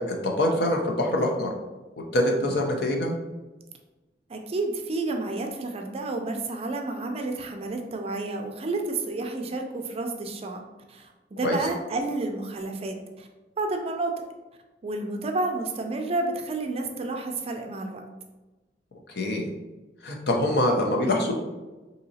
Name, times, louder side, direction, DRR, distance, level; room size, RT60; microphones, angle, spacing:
voice 1, 0.0-1.5 2.1-3.1 11.4-11.6 19.1-19.5 20.0-21.3, left 1 dB, 65° left, 1 dB, 0.6 m, -24 dB
voice 2, 4.3-10.6 10.9-13.3 13.6-14.1 14.8-18.0, right 2 dB, 35° right, 3 dB, 0.4 m, -30 dB
3.8 x 2.8 x 2.7 m, 1.1 s
head